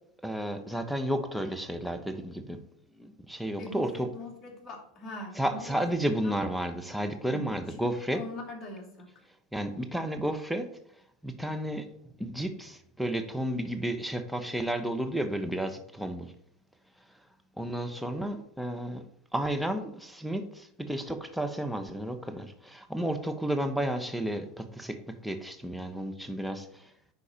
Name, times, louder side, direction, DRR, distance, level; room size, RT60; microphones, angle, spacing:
voice 1, 0.2-2.6 2.9-4.1 5.4-8.2 9.5-10.7 11.2-11.9 12.2-16.3 17.6-19.0 19.3-26.9, right 1 dB, ahead, 6 dB, 1.1 m, -32 dB
voice 2, 3.6-6.4 7.3-7.5 8.1-9.1, left 1 dB, 35° left, 0 dB, 2.7 m, -42 dB
10.0 x 4.1 x 4.4 m, 0.70 s
hypercardioid pair, 100°, 0 cm